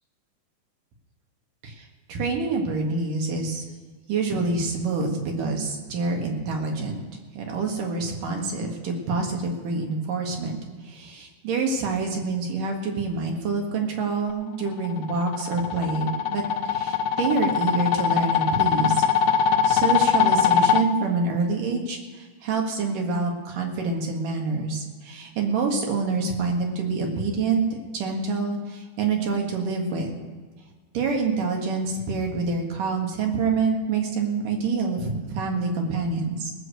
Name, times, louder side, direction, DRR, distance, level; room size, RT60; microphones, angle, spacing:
voice 1, 2.1-3.6 4.1-7.0 7.3-10.5 10.9-18.9 19.6-22.0 22.4-27.6 27.9-28.6 29.0-30.1 30.9-36.5, right 4 dB, 90° right, 1 dB, 3.4 m, -26 dB
sound 1, 14.7-20.8, left 8 dB, 75° left, 1.9 m, -22 dB
18.0 x 6.5 x 8.0 m, 1.4 s
omnidirectional pair, 3.7 m